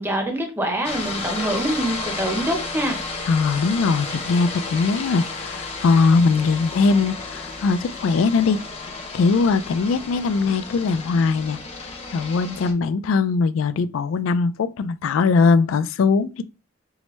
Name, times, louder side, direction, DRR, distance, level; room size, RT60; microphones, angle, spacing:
voice 1, 0.0-3.0, right 1 dB, 10° right, 0.7 m, -25 dB
sound 1, 0.8-12.7, left 3 dB, 30° left, 0.7 m, -32 dB
sound 2, 1.3-6.2, right 1 dB, 60° right, 1.4 m, -44 dB
voice 2, 3.3-8.6 9.1-16.4, left 4 dB, 85° left, 0.3 m, -20 dB
4.6 x 2.1 x 3.0 m
head